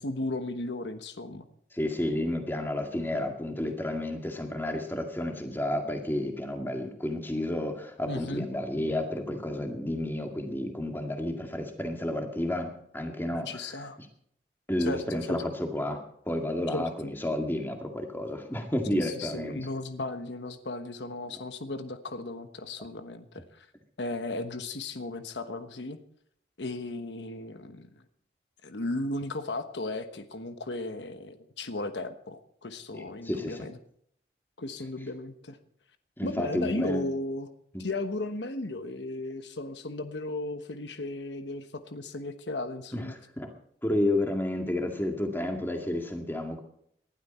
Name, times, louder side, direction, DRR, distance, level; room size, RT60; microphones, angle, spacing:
voice 1, 0.0-1.4 2.9-3.2 8.0-8.5 13.3-14.0 14.8-15.4 16.7-17.1 18.9-23.7 24.0-26.0 26.6-28.0 28.6-33.8 34.6-35.6 36.2-37.5 37.8-43.1, left 2 dB, 90° left, 9 dB, 1.2 m, -35 dB
voice 2, 1.7-13.8 14.7-19.6 32.9-33.7 36.2-37.1 37.7-37.8 42.9-43.1 43.4-43.5 43.8-46.6, left 1 dB, 10° left, 3 dB, 2.1 m, -31 dB
19.5 x 12.0 x 4.4 m, 0.67 s
head